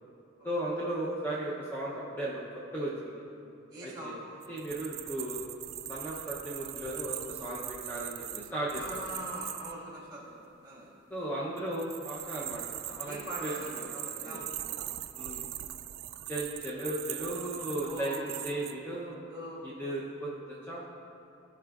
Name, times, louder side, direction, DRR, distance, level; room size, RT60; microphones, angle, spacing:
voice 1, 0.4-2.5 2.7-3.2 3.8-4.2 4.5-5.4 5.9-9.1 11.1-14.4 15.1-15.5 16.3-18.1 18.4-19.2 19.6-20.3 20.7-20.8, right 1 dB, 10° left, -7 dB, 0.6 m, -36 dB
voice 2, 3.7-4.4 8.7-10.9 13.1-14.9 17.8-18.4 19.3-19.8, right 1 dB, 20° right, -5 dB, 1.6 m, -42 dB
sound 1, 4.4-9.7 11.6-18.7, right 13 dB, 85° right, 0.3 m, -40 dB
13.5 x 4.8 x 2.3 m, 2.7 s
head